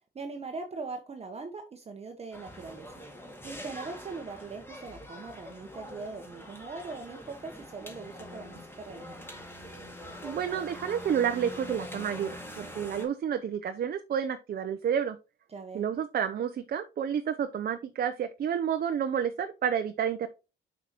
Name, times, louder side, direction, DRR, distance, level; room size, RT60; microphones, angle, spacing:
voice 1, 0.1-9.2 15.5-15.8, right 4 dB, 30° right, 5 dB, 0.9 m, -41 dB
sound 1, 2.3-13.1, left 1 dB, 10° left, 1.9 m, -44 dB
voice 2, 10.2-15.2 15.7-20.3, right 8 dB, 50° right, 8 dB, 0.6 m, -30 dB
6.1 x 5.7 x 2.9 m, 0.29 s
cardioid pair, 90°, 20 cm